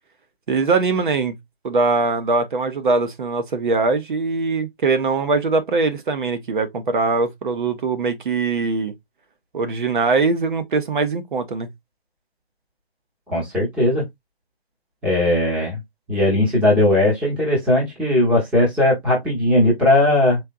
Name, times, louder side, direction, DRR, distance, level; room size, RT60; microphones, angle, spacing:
voice 1, 0.5-1.4 1.6-8.9 9.5-11.7, right 4 dB, 50° right, 1.0 m, -21 dB
voice 2, 13.3-14.0 15.0-15.8 16.1-20.4, left 1 dB, 5° right, 0.8 m, -18 dB
4.4 x 3.7 x 2.5 m
hypercardioid pair, 160°, 32 cm